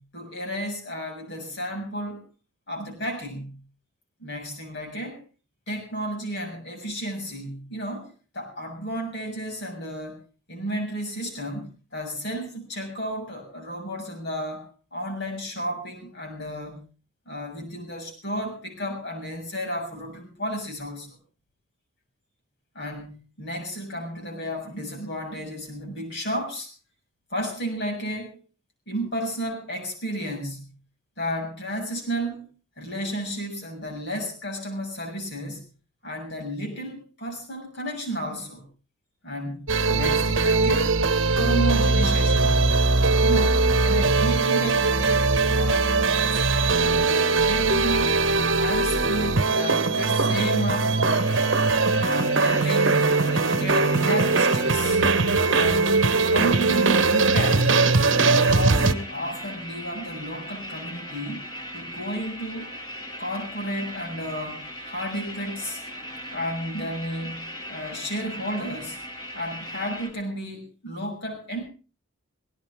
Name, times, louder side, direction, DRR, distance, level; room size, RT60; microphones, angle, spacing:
voice 1, 0.0-2.3 2.7-3.6 4.2-5.2 5.7-10.2 10.5-16.8 17.3-21.2 22.8-26.7 27.3-28.4 28.9-30.7 31.2-32.5 32.8-35.6 36.0-38.6 39.2-39.6 39.9-40.9 41.3-42.7 43.2-46.4 46.8-48.2 48.6-51.4 51.9-53.0 53.3-55.0 55.5-57.7 58.2-61.4 61.7-62.8 63.2-65.8 66.3-69.0 69.3-71.6, equal, 50° left, 2 dB, 7.0 m, -32 dB
sound 1, 39.7-58.9, right 3 dB, 55° right, 1.2 m, -21 dB
sound 2, 51.1-70.1, equal, 20° left, 2.9 m, -39 dB
18.5 x 17.0 x 3.6 m, 0.34 s
head